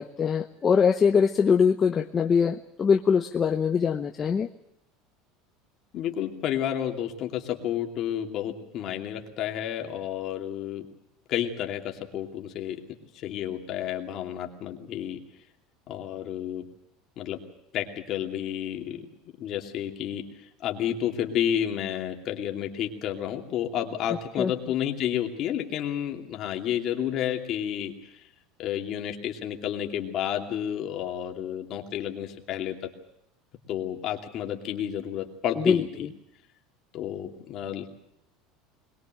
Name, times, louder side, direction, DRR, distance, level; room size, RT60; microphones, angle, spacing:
voice 1, 0.0-4.5 24.4-24.5 35.6-35.8, left 6 dB, 20° left, 4 dB, 0.8 m, -22 dB
voice 2, 5.9-10.9 11.3-15.2 15.9-16.7 17.2-17.4 17.7-19.1 19.4-20.3 20.6-27.9 28.6-32.7 33.7-36.1 36.9-37.9, left 10 dB, 35° left, 3 dB, 2.7 m, -31 dB
22.0 x 21.0 x 7.6 m, 0.82 s
cardioid pair, 180°, 0 cm